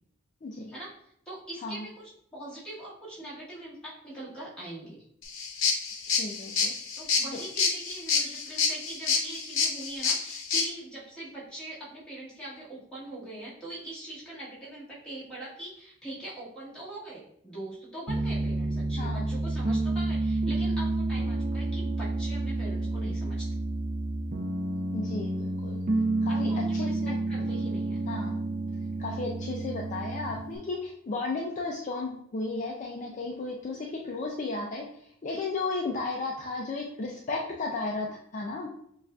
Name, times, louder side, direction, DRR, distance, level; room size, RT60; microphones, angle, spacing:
voice 1, 0.4-0.7 1.6-1.8 6.1-6.7 19.0-19.3 24.9-25.8 26.2-27.2 28.1-28.4 29.0-38.7, left 3 dB, 35° left, -1 dB, 0.4 m, -34 dB
voice 2, 1.2-5.0 7.0-23.5 26.3-28.0, right 1 dB, 5° left, -9 dB, 1.6 m, -42 dB
sound 1, 5.2-10.7, left 5 dB, 65° left, 0.8 m, -28 dB
Piano, 18.1-30.6, right 2 dB, 35° right, 0.4 m, -30 dB
6.8 x 2.4 x 2.3 m, 0.70 s
head